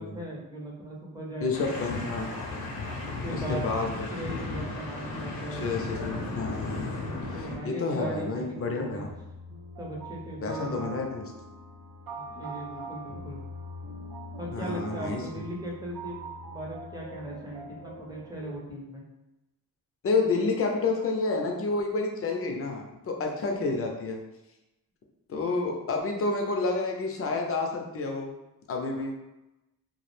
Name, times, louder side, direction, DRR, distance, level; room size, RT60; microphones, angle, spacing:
voice 1, 0.0-1.8 3.0-3.6 4.1-5.7 7.4-9.1 9.8-10.9 12.1-13.4 14.3-19.0, right 1 dB, 10° right, -3 dB, 0.6 m, -38 dB
voice 2, 1.4-2.3 3.3-4.1 5.5-6.8 7.3-9.1 10.4-11.3 14.5-15.4 20.0-24.2 25.3-28.3 28.7-29.1, left 3 dB, 40° left, 2 dB, 0.4 m, -29 dB
sound 1, 1.5-7.6, left 3 dB, 90° left, 0.6 m, -35 dB
sound 2, 8.2-18.6, right 1 dB, 85° right, 0.8 m, -43 dB
2.3 x 2.0 x 3.1 m, 0.97 s
wide cardioid pair, 115°, 34 cm